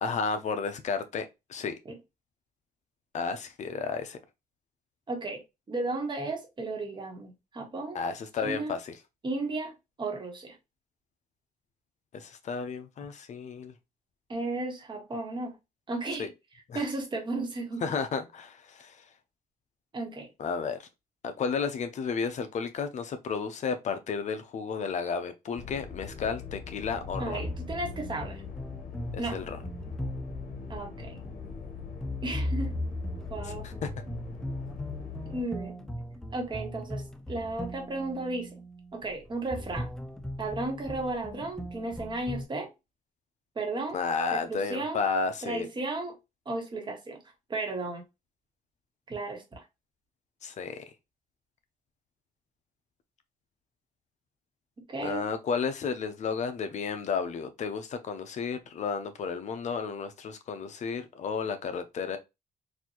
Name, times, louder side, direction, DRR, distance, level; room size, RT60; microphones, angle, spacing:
voice 1, 0.0-1.7 3.1-4.2 7.9-9.0 12.1-13.7 16.2-16.3 16.7-16.8 17.8-19.0 20.4-20.9 21.2-27.4 29.1-29.6 33.4-33.7 43.9-45.7 50.4-50.8 55.0-62.2, left 5 dB, 50° left, 0.6 m, -32 dB
voice 2, 5.1-5.4 5.7-8.0 8.4-8.7 9.2-10.5 14.3-15.5 15.9-16.3 16.7-17.8 19.9-20.3 27.2-28.4 29.2-29.4 30.7-31.2 32.2-32.8 33.3-33.7 35.3-35.8 36.3-38.5 38.9-39.9 40.4-42.7 43.5-44.0 44.3-45.0 45.4-46.1 46.5-47.2 47.5-48.0 49.1-49.6 54.9-55.3, right 2 dB, 30° right, 1.3 m, -34 dB
sound 1, 25.6-35.4, left 6 dB, 75° left, 1.2 m, -42 dB
sound 2, 26.9-42.5, left 1 dB, 5° left, 0.5 m, -38 dB
4.1 x 2.5 x 2.9 m
cardioid pair, 115°, 15 cm